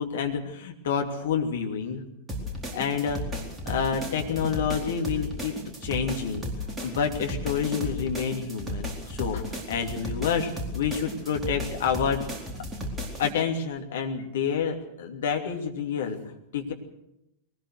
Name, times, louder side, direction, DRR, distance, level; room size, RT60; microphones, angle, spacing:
voice 1, 0.0-2.0 2.7-3.2 3.6-5.5 5.8-12.2 13.2-16.2 16.5-16.7, left 6 dB, 60° left, 3 dB, 2.8 m, -28 dB
sound 1, 2.3-13.3, left 1 dB, 15° right, 4.3 m, -34 dB
21.5 x 19.5 x 6.6 m, 0.85 s
figure-of-eight pair, 90°, 0 cm